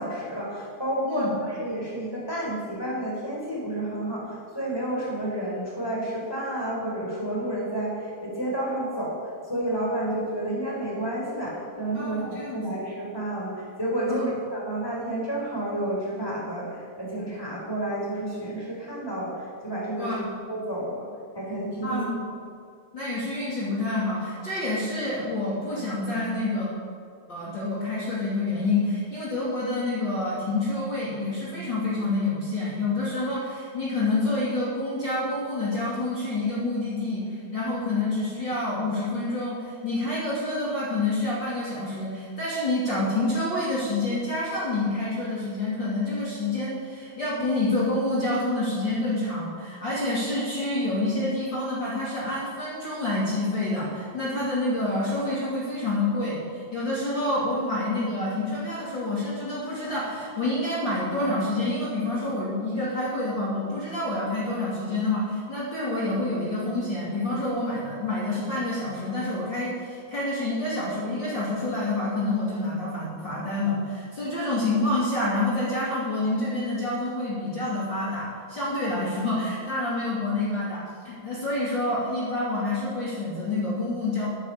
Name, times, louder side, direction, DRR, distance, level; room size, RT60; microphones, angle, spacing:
voice 1, 0.0-20.1 20.5-21.1 21.3-22.0, right 1 dB, 5° left, -5 dB, 3.6 m, -30 dB
voice 2, 11.9-12.8 14.1-14.2 19.9-20.3 21.8-22.3 22.9-26.7 27.3-84.3, left 2 dB, 30° left, -9 dB, 3.1 m, -28 dB
12.0 x 10.0 x 6.9 m, 2.3 s
omnidirectional pair, 4.6 m